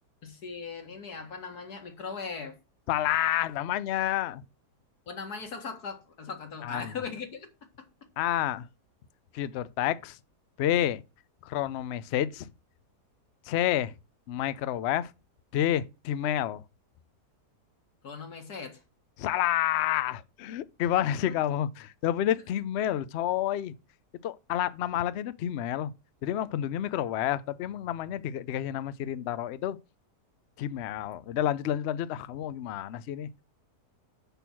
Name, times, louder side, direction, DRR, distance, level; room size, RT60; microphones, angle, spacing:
voice 1, 0.2-2.6 5.1-7.5 7.8-7.9 18.0-18.8, left 5 dB, 70° left, 2.3 m, -39 dB
voice 2, 2.9-4.4 6.6-6.9 8.2-8.7 9.3-10.2 10.6-11.0 11.4-12.5 13.5-13.9 14.3-15.1 15.5-16.6 19.2-23.7 24.2-25.9 26.2-29.8 30.6-33.3, left 12 dB, 85° left, 0.5 m, -29 dB
6.8 x 6.2 x 5.9 m
omnidirectional pair, 1.8 m